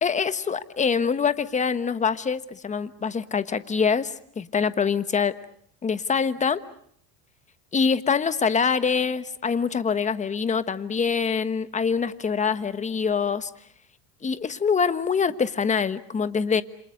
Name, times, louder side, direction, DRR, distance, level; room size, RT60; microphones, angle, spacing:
voice 1, 0.0-5.3 5.8-6.6 7.7-13.5 14.2-16.6, left 6 dB, 20° left, 12 dB, 1.3 m, -24 dB
28.5 x 27.0 x 6.5 m, 0.66 s
cardioid pair, 130°, 36 cm